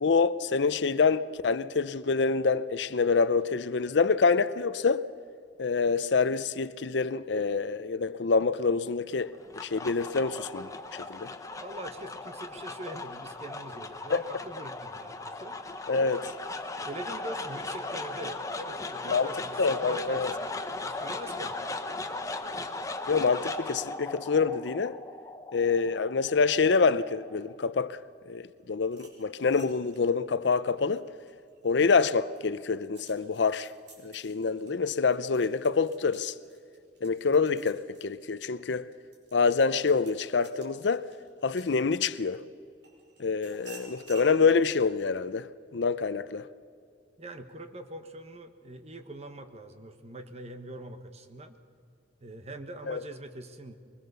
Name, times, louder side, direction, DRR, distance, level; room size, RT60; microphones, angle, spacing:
voice 1, 0.0-5.0 5.6-9.3 9.6-11.3 14.1-14.2 15.9-16.3 19.1-19.3 19.6-20.3 23.1-25.0 25.5-28.0 28.3-31.1 31.6-33.7 34.0-36.3 37.0-38.9 39.3-41.1 41.4-42.4 43.2-46.5 52.9-53.0, left 4 dB, 75° left, 0.6 m, -26 dB
sound 1, 9.2-27.5, left 2 dB, 20° left, 1.0 m, -38 dB
voice 2, 11.3-15.6 16.8-20.5 20.8-21.6 47.2-51.6 52.2-53.8, right 1 dB, 35° right, 1.3 m, -43 dB
sound 2, 28.8-31.7 32.1-42.3 42.8-44.3, right 3 dB, 80° right, 5.3 m, -54 dB
23.0 x 20.5 x 6.9 m
head